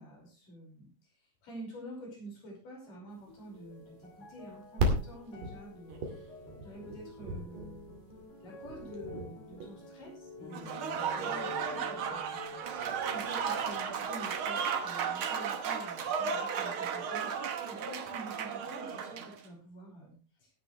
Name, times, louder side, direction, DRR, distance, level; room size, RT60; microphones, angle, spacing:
voice 1, 0.0-6.1 6.6-7.9 8.4-12.6 13.1-20.5, right 1 dB, 80° left, -2 dB, 7.0 m, -48 dB
sound 1, 2.9-16.3 16.7-17.6 18.3-18.4, left 3 dB, 50° left, 2.8 m, -50 dB
sound 2, 3.3-14.4, right 1 dB, 80° right, 4.0 m, -38 dB
Applause / Crowd, 10.5-19.4, right 7 dB, 60° right, 1.5 m, -34 dB
16.5 x 9.8 x 3.2 m, 0.36 s
omnidirectional pair, 3.7 m